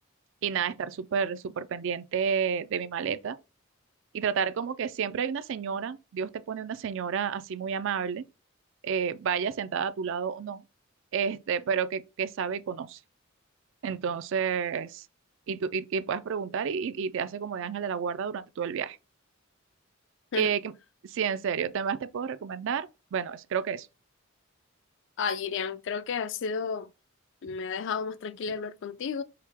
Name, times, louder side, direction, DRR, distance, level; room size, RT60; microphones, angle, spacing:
voice 1, 0.4-3.4 4.1-8.3 8.8-10.6 11.1-13.0 13.8-15.1 15.5-19.0 20.4-20.7 21.0-23.9, right 6 dB, 65° right, 0.4 m, -30 dB
voice 2, 25.2-26.9 27.4-29.2, left 5 dB, 60° left, 0.4 m, -32 dB
4.7 x 2.8 x 3.4 m
head